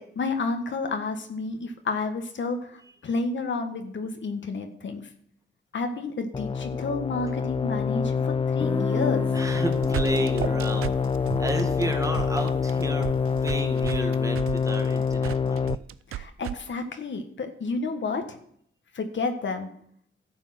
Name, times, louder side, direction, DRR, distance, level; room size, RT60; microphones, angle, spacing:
voice 1, 0.0-5.1 5.7-9.4 16.1-18.4 18.9-19.7, left 3 dB, 60° left, 6 dB, 1.6 m, -31 dB
sound 1, 6.3-15.8, left 5 dB, 25° left, 0.4 m, -26 dB
Guitar, 8.6-14.2, left 1 dB, 10° left, 0.9 m, -36 dB
voice 2, 9.3-11.1 11.4-13.1 13.4-15.8, right 1 dB, 15° right, 5 dB, 1.9 m, -32 dB
sound 2, 9.5-16.5, right 13 dB, 90° right, 0.5 m, -34 dB
12.5 x 7.2 x 5.8 m, 0.66 s
cardioid pair, 70°, 21 cm